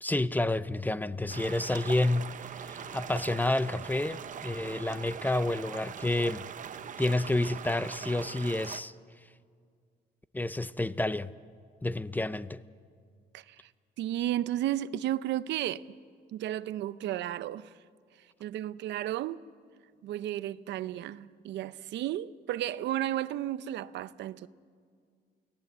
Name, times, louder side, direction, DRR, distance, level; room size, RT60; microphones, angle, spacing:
voice 1, 0.0-6.5 7.0-8.9 10.3-11.3 11.8-12.6, left 2 dB, 10° left, 0.5 m, -29 dB
sound 1, 1.3-8.8, right 8 dB, 45° right, 0.7 m, -42 dB
voice 2, 13.3-13.7 14.0-15.8 16.3-17.7 18.4-19.4 20.0-24.5, right 13 dB, 80° right, 0.6 m, -33 dB
29.0 x 16.5 x 8.1 m
cardioid pair, 110°, 18 cm